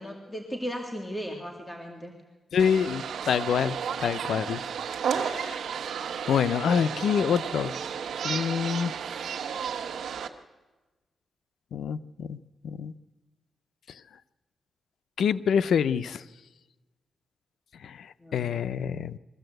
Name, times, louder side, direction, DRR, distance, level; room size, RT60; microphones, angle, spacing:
voice 1, 0.0-2.1 4.4-4.6 18.2-18.5, equal, 10° left, 1 dB, 2.3 m, -36 dB
voice 2, 2.5-4.6 5.1-5.6 6.3-7.7 8.2-8.9 11.7-12.4 12.6-12.9 15.2-16.2 17.8-18.1 18.3-19.2, left 7 dB, 85° left, 14 dB, 0.6 m, -26 dB
sound 1, 2.6-10.3, right 7 dB, 85° right, 1.1 m, -33 dB
22.0 x 15.0 x 7.9 m, 1.2 s
cardioid pair, 100°, 0 cm